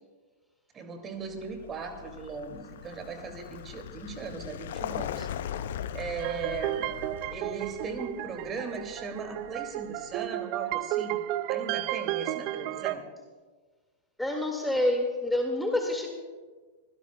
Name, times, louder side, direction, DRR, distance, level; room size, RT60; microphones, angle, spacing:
voice 1, 0.7-5.6 5.9-6.9 7.3-11.2 11.5-13.0, right 4 dB, 25° right, 5 dB, 2.2 m, -38 dB
Vehicle, 1.3-10.1, left 10 dB, 55° left, 0.6 m, -40 dB
sound 1, 6.2-13.0, right 14 dB, 40° right, 0.4 m, -33 dB
voice 2, 14.2-16.1, left 1 dB, 5° left, 2 dB, 1.9 m, -27 dB
25.0 x 16.5 x 2.2 m, 1.4 s
figure-of-eight pair, 95°, 0 cm